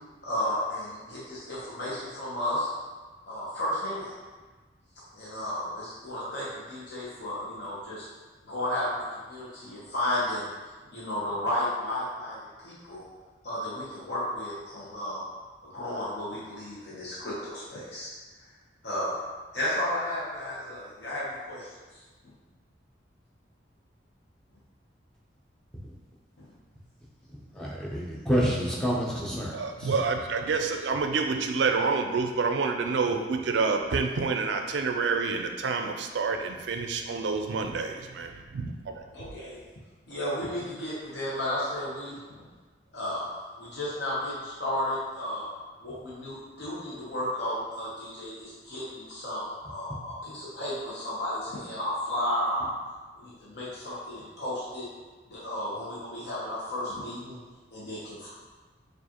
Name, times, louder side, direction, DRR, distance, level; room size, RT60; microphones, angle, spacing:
voice 1, 0.2-2.7 3.3-4.1 5.1-8.1 8.5-10.5 10.9-13.1 13.4-15.3 15.6-18.1 18.8-19.1 19.5-21.7 26.4-26.5 39.1-39.6 40.1-42.2 42.9-45.5 45.8-52.7 53.1-54.9 55.3-57.4 57.7-58.3, left 1 dB, 65° left, -8 dB, 0.8 m, -33 dB
voice 2, 27.6-29.5 29.8-29.9, equal, 5° left, -5 dB, 0.5 m, -28 dB
voice 3, 29.5-39.1, right 4 dB, 70° right, 4 dB, 0.4 m, -28 dB
4.6 x 2.4 x 2.9 m, 1.3 s
head